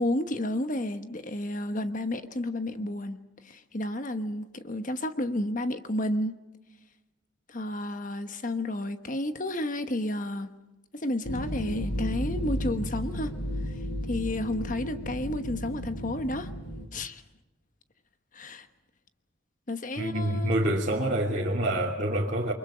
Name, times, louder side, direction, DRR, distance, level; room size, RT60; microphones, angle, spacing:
voice 1, 0.0-3.2 3.4-6.4 7.5-10.5 10.9-13.3 14.1-16.5 16.9-17.2 18.3-18.7 19.7-20.7, left 1 dB, 40° left, 9 dB, 1.2 m, -31 dB
sound 1, 11.2-16.9, equal, 55° left, 5.1 m, -33 dB
voice 2, 20.0-22.5, right 1 dB, 40° right, -5 dB, 2.9 m, -27 dB
29.5 x 24.0 x 5.1 m, 1.0 s
head